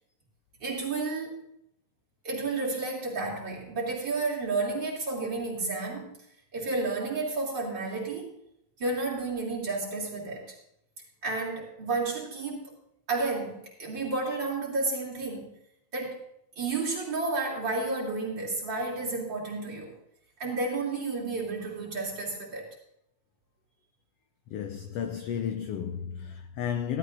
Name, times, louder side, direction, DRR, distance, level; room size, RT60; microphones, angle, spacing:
voice 1, 0.6-1.4 2.2-6.1 6.5-8.3 8.8-10.5 11.2-12.7 13.1-15.5 15.9-16.2 16.6-19.9 20.4-22.8, right 3 dB, 35° right, 3.7 m, -31 dB
voice 2, 24.5-27.0, left 8 dB, 85° left, 1.3 m, -33 dB
15.0 x 12.5 x 2.6 m
omnidirectional pair, 3.5 m